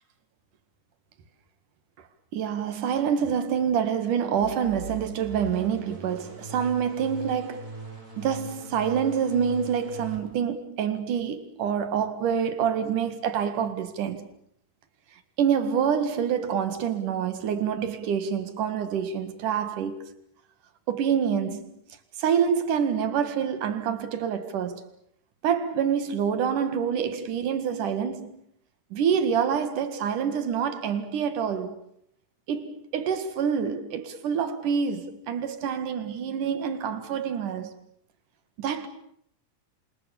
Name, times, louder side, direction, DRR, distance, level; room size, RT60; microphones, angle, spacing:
voice 1, 2.3-7.7 8.2-14.3 15.4-20.2 20.9-21.8 22.2-24.9 25.4-28.4 28.9-31.8 32.5-37.7 38.6-38.9, right 7 dB, 90° right, 3.4 m, -27 dB
sound 1, 4.4-10.2, right 3 dB, 30° right, 5.2 m, -41 dB
28.0 x 26.5 x 7.0 m
omnidirectional pair, 3.5 m